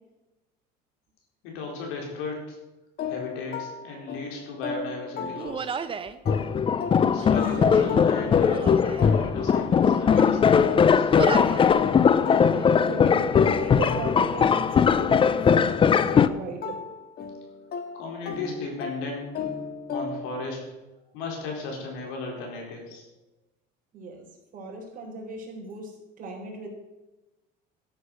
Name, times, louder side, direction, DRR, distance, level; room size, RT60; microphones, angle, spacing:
voice 1, 1.4-2.6 3.1-5.8 7.1-11.1 17.9-19.3 19.9-20.7 21.1-23.0, left 3 dB, 75° left, 0 dB, 4.4 m, -36 dB
sound 1, 3.0-5.9 6.3-14.6 15.0-20.4, left 5 dB, 45° left, 1.8 m, -36 dB
Human voice, 5.4-6.2 7.1-8.0 8.4-9.1 9.8-10.7 11.1-11.7 12.1-12.7, right 6 dB, 25° right, 0.7 m, -35 dB
sound 2, 6.3-16.3, left 7 dB, 25° left, 0.5 m, -20 dB
voice 2, 7.6-8.0 12.3-16.8 23.9-24.3 24.5-26.7, right 3 dB, 40° right, -1 dB, 3.8 m, -37 dB
13.0 x 7.2 x 6.6 m, 1.0 s
cardioid pair, 120°, 21 cm